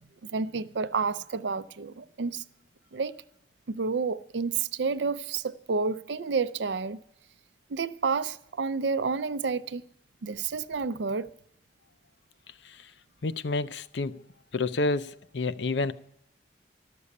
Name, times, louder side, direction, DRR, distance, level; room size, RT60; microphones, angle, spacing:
voice 1, 0.3-2.4 2.9-3.1 3.7-7.0 7.7-9.8 10.2-11.3, right 4 dB, 80° right, 0.5 m, -30 dB
voice 2, 13.2-14.2 14.5-15.9, left 3 dB, 80° left, 0.6 m, -29 dB
12.5 x 6.9 x 9.8 m
head